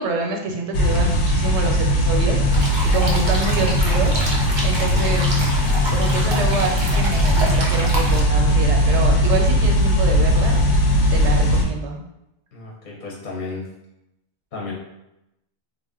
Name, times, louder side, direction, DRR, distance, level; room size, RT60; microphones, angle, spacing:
voice 1, 0.0-4.2 4.6-5.2 5.9-10.6 11.1-12.0, right 3 dB, 85° right, 1 dB, 0.9 m, -27 dB
sound 1, 0.7-11.6, equal, 80° left, 0.8 m, -18 dB
sound 2, 2.5-8.2, right 1 dB, 40° right, 0.4 m, -28 dB
voice 2, 12.5-13.7 14.5-14.7, left 3 dB, 50° left, -4 dB, 0.7 m, -32 dB
2.4 x 2.1 x 3.5 m, 0.88 s
omnidirectional pair, 1.1 m